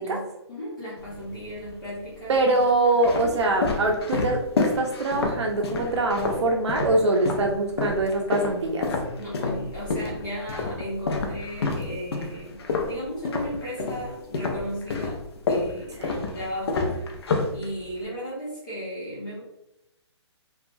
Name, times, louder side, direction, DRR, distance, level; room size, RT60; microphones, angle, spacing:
voice 1, 0.0-2.7 3.2-3.3 9.2-17.2 17.5-19.4, equal, 45° left, -9 dB, 1.0 m, -35 dB
sound 1, 1.0-1.7 2.4-7.5 7.8-14.1 14.3-18.0, left 3 dB, 60° left, 0.5 m, -28 dB
voice 2, 2.3-8.9 16.0-16.2, right 2 dB, 70° right, 1 dB, 0.5 m, -24 dB
2.8 x 2.3 x 2.5 m, 0.87 s
hypercardioid pair, 165°, 15 cm